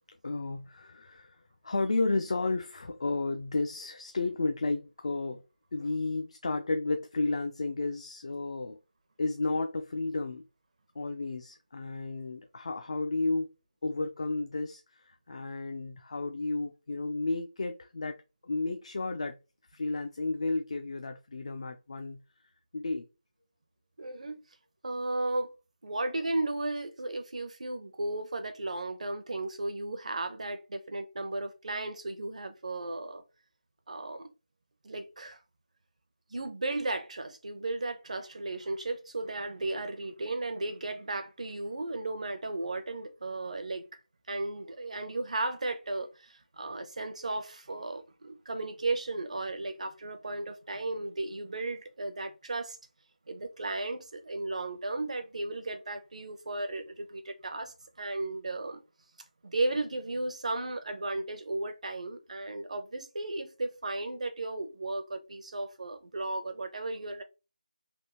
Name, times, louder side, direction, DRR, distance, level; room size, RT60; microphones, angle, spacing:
voice 1, 0.2-1.4 1.6-5.4 5.7-8.8 9.2-10.5 11.0-13.5 13.8-18.2 18.4-19.4 19.7-22.2 22.7-23.1, left 3 dB, 45° left, 0.3 m, -32 dB
voice 2, 24.0-24.4 24.8-25.5 25.8-33.2 33.9-34.3 34.8-35.4 36.3-44.0 44.3-52.8 53.3-58.8 59.4-67.2, right 2 dB, 55° right, 0.6 m, -35 dB
3.4 x 2.3 x 2.9 m
figure-of-eight pair, 170°, 4 cm